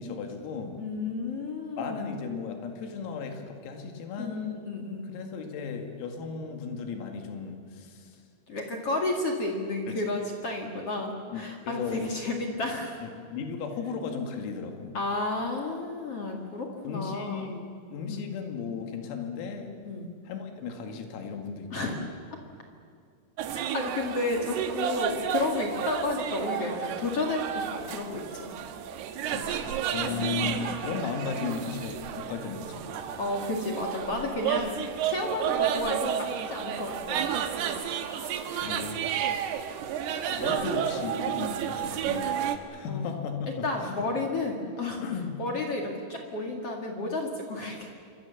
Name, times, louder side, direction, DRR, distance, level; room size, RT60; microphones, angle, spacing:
voice 1, 0.0-0.8 1.8-4.6 5.1-8.1 9.9-10.0 11.3-12.1 13.0-15.0 16.8-17.6 17.9-19.7 20.3-21.9 29.3-32.9 38.1-39.0 40.3-42.3 42.7-44.1 45.0-45.3, left 5 dB, 85° left, 4 dB, 4.9 m, -35 dB
voice 2, 0.8-2.2 4.2-5.1 8.5-13.0 14.9-17.6 18.0-18.3 19.8-20.1 21.7-22.1 23.5-28.5 30.0-30.7 33.2-37.2 42.8-43.1 43.6-45.0 45.4-47.9, left 2 dB, 45° left, 1 dB, 2.0 m, -32 dB
sound 1, 23.4-42.6, right 8 dB, 70° right, 2.7 m, -31 dB
27.0 x 24.5 x 7.2 m, 2.2 s
omnidirectional pair, 6.0 m